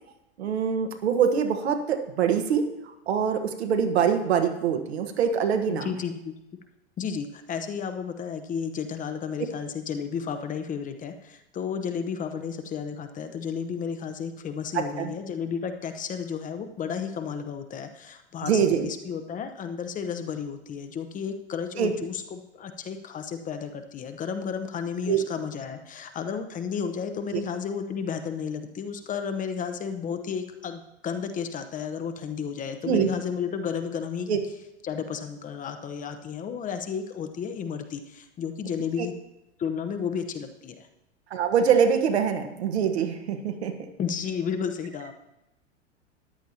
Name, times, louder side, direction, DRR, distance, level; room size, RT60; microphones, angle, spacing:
voice 1, 0.4-2.6 3.1-5.9 14.7-15.1 18.4-18.9 21.8-21.9 25.1-25.2 27.3-27.4 32.8-33.1 34.3-34.4 39.0-39.1 41.3-43.7, right 7 dB, 65° right, 6 dB, 1.4 m, -24 dB
voice 2, 5.7-6.3 7.0-34.3 34.8-39.1 39.6-40.9 44.0-45.1, left 7 dB, 25° left, 8 dB, 0.8 m, -32 dB
14.0 x 10.0 x 2.9 m, 0.89 s
figure-of-eight pair, 90°, 34 cm